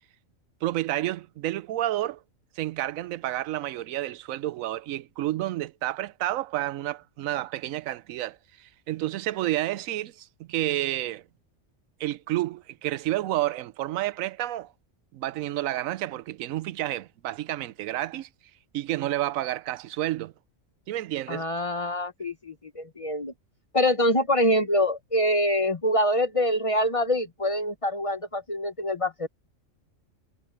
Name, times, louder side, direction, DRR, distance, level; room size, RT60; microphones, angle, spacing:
voice 1, 0.6-2.2 2.6-11.2 12.0-14.7 15.1-18.3 18.7-20.3 20.9-21.4, right 14 dB, 90° right, 1.0 m, -30 dB
voice 2, 21.3-23.3 23.7-29.3, left 1 dB, 30° left, 0.8 m, -25 dB
omnidirectional pair, 1.4 m